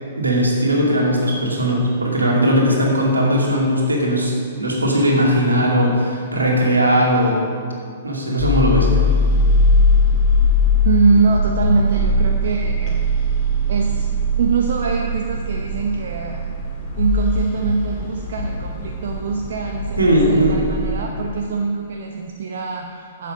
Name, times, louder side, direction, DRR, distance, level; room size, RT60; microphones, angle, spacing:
voice 1, 0.2-7.4 8.0-9.1 20.0-20.6, equal, 80° right, -2 dB, 2.4 m, -18 dB
sound 1, 8.4-21.0, left 1 dB, 35° left, 1.9 m, -20 dB
voice 2, 10.8-13.1 13.7-14.1 14.4-16.4 17.0-23.3, right 4 dB, 55° right, 2 dB, 0.8 m, -23 dB
11.0 x 7.6 x 5.2 m, 2.3 s
figure-of-eight pair, 115°, 0 cm